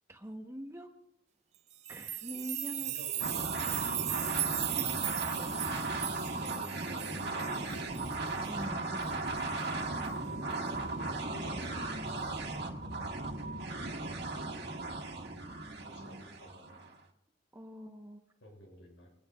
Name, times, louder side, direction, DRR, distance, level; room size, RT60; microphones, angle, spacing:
voice 1, 0.1-0.9 1.9-2.9 4.7-5.5 6.4-6.5 8.5-9.4 15.5-16.4 17.5-18.2, equal, 15° right, 4 dB, 1.0 m, -45 dB
sound 1, 1.7-8.5 9.0-9.1 9.4-9.5 10.0-10.1, right 12 dB, 35° right, 0.4 m, -37 dB
voice 2, 2.8-3.7 4.0-4.2 5.4-5.7 6.3-7.7 10.9-13.6 14.8-15.2 15.8-17.0 18.4-19.1, equal, 80° left, 0 dB, 6.8 m, -53 dB
sound 2, 3.2-16.9, right 2 dB, 60° right, 1.7 m, -36 dB
23.5 x 18.0 x 2.4 m, 0.79 s
head